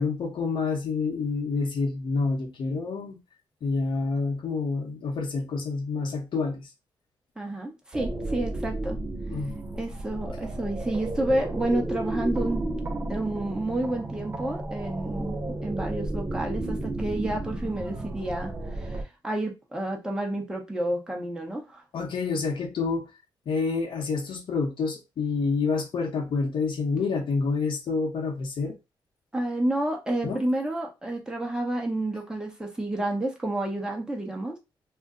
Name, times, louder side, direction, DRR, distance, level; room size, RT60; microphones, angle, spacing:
voice 1, 0.0-3.2 3.6-6.7 9.3-9.6 21.9-23.1 23.5-28.8 30.2-30.5, left 4 dB, 65° left, 0.8 m, -28 dB
voice 2, 7.4-9.0 9.7-12.7 13.1-21.8 29.3-34.6, right 1 dB, 10° right, 1.0 m, -30 dB
sound 1, 7.9-19.0, right 2 dB, 25° right, 0.5 m, -33 dB
2.5 x 2.1 x 3.7 m
cardioid pair, 100°, 9 cm